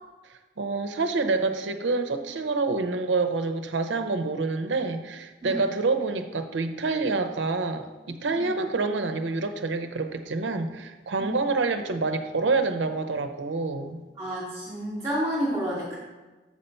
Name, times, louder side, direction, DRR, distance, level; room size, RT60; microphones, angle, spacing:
voice 1, 0.6-14.0, right 3 dB, 90° right, 9 dB, 0.6 m, -27 dB
voice 2, 14.2-15.9, equal, 20° right, -11 dB, 2.7 m, -30 dB
7.4 x 4.3 x 5.4 m, 1.2 s
head